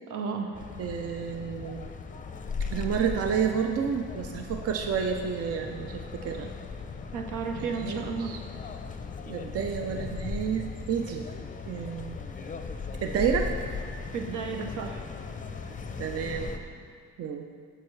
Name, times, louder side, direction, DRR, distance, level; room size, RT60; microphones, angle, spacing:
voice 1, 0.1-0.5 7.1-8.3 14.1-15.0 15.7-15.8 16.1-16.2, right 5 dB, 80° right, 3 dB, 0.9 m, -33 dB
sound 1, 0.5-16.6, left 4 dB, 25° left, 0.5 m, -38 dB
voice 2, 0.8-1.9 2.7-6.5 7.5-8.4 9.3-11.3 11.7-12.2 13.0-13.5 16.0-16.5 17.2-17.5, right 7 dB, 50° right, 4 dB, 0.6 m, -30 dB
9.0 x 6.3 x 3.2 m, 2.1 s
cardioid pair, 90°, 30 cm